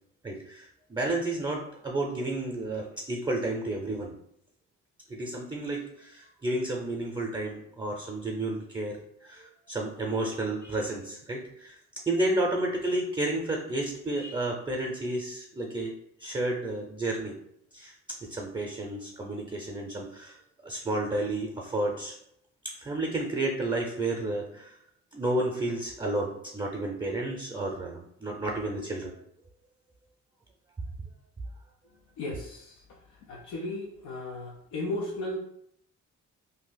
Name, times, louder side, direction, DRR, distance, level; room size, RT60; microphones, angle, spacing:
voice 1, 0.2-4.1 5.1-11.8 12.1-17.4 17.7-17.9 18.2-20.4 20.6-22.2 22.7-24.8 25.1-29.2, right 2 dB, 15° right, 0 dB, 0.5 m, -31 dB
voice 2, 32.2-32.8 33.1-35.4, left 2 dB, 90° left, -1 dB, 0.5 m, -35 dB
2.7 x 2.3 x 3.9 m, 0.72 s
cardioid pair, 90°, 30 cm